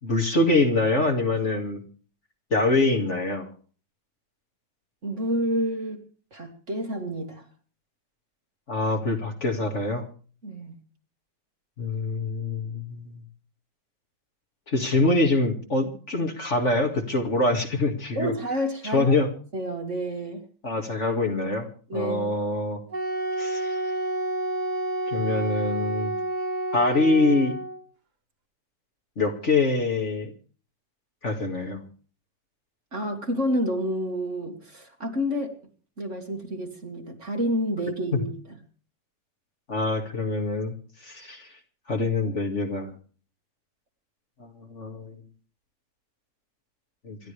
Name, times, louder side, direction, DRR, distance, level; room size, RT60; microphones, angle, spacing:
voice 1, 0.0-1.8 2.5-3.5 8.7-10.0 11.8-13.2 14.7-18.3 18.8-19.3 20.6-21.7 21.9-22.8 23.4-23.8 25.1-26.1 26.7-27.5 29.2-30.3 31.2-31.8 38.1-38.2 39.7-40.7 41.0-41.5 41.9-42.9 44.4-45.2 47.0-47.2, left 2 dB, 40° left, 3 dB, 2.5 m, -25 dB
voice 2, 5.0-6.0 6.3-7.5 10.4-10.8 18.2-19.1 19.5-20.4 21.9-22.3 32.9-35.5 36.0-38.6, equal, 40° right, 3 dB, 2.4 m, -29 dB
Wind instrument woodwind instrument, 22.9-27.8, right 2 dB, 65° right, 3.1 m, -29 dB
27.0 x 12.0 x 3.4 m, 0.40 s
omnidirectional pair, 1.9 m